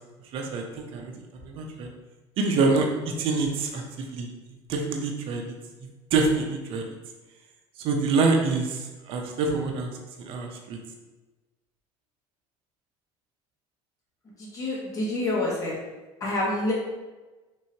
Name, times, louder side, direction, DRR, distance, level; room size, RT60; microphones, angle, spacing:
voice 1, 0.3-1.1 1.4-1.9 2.4-2.9 3.2-3.8 4.1-4.3 4.7-5.4 6.1-6.8 7.8-8.8 9.1-9.9 10.2-10.8, right 3 dB, 55° right, 3 dB, 0.6 m, -25 dB
voice 2, 14.4-15.7 16.2-16.7, left 1 dB, 30° left, -4 dB, 1.2 m, -27 dB
3.6 x 3.1 x 2.8 m, 1.2 s
cardioid pair, 130°, 11 cm